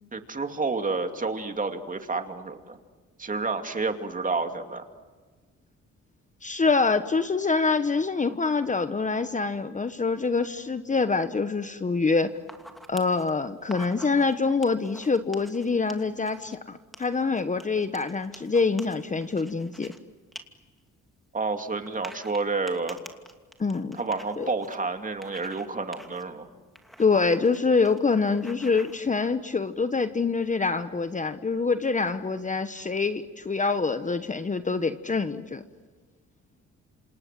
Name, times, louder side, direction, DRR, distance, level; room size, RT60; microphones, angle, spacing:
voice 1, 0.1-2.8 3.2-4.9 21.3-23.0 23.9-26.5, right 3 dB, 25° right, 6 dB, 2.5 m, -30 dB
voice 2, 6.4-12.3 12.9-19.9 23.6-24.0 24.4-24.5 27.0-35.6, left 4 dB, 25° left, 10 dB, 1.2 m, -25 dB
sound 1, 12.4-13.3 13.6-14.3 14.6-16.5 16.9-20.0 20.3-20.4 20.8-20.9 21.9-24.8 25.2-25.7 25.9-26.2 26.8-27.6 27.8-28.0 28.3-29.0, equal, ahead, 2.6 m, -47 dB
28.0 x 27.0 x 7.6 m, 1.4 s
cardioid pair, 90°, 30 cm